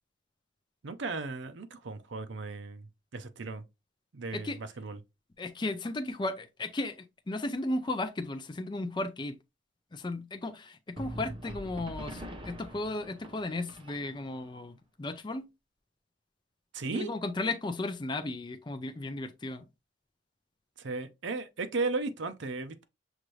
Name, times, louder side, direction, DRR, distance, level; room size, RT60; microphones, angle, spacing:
voice 1, 0.8-2.9 3.1-3.6 4.1-5.0 16.7-17.1 20.8-22.8, right 3 dB, 70° right, 0.6 m, -35 dB
voice 2, 5.4-9.4 9.9-15.5 16.9-19.7, left 2 dB, 25° left, 0.4 m, -35 dB
sound 1, 11.0-14.5, equal, 25° right, 0.7 m, -43 dB
6.0 x 2.6 x 3.1 m
head